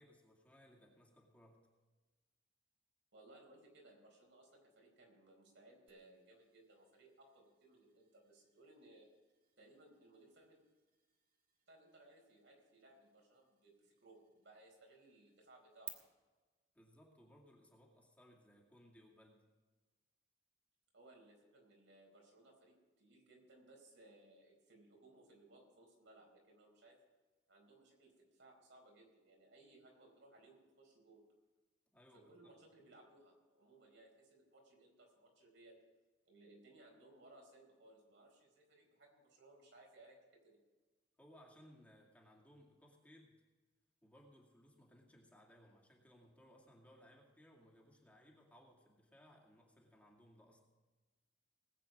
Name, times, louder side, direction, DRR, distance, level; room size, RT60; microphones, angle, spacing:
voice 1, 0.0-1.7 16.7-19.4 31.9-32.5 41.2-43.4 44.0-50.6, equal, 10° left, -2 dB, 2.2 m, -64 dB
voice 2, 3.1-9.1 9.6-10.6 11.7-16.0 20.9-27.0 27.5-31.2 32.1-35.8 36.2-40.6, right 2 dB, 75° right, 0 dB, 4.4 m, -63 dB
sound 1, 5.9-15.9, right 12 dB, 50° right, 1.6 m, -61 dB
19.5 x 8.3 x 5.2 m, 1.3 s
head